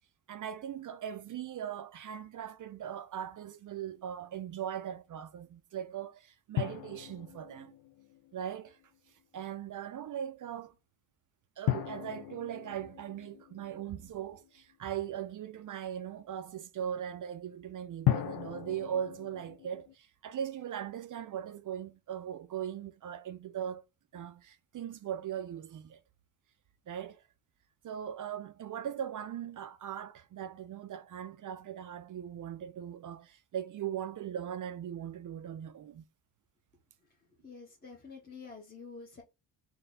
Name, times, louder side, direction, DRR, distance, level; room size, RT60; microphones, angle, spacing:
voice 1, 0.3-7.7 8.3-8.8 9.3-10.7 11.6-23.8 24.1-26.0 26.9-27.2 27.8-36.1, right 9 dB, 45° right, 0.4 m, -39 dB
sound 1, 6.6-8.8 11.7-14.6 18.1-19.9, left 14 dB, 55° left, 0.5 m, -36 dB
voice 2, 37.0-39.2, left 4 dB, 20° left, 1.0 m, -49 dB
4.1 x 2.2 x 3.9 m
cardioid pair, 85°, 45 cm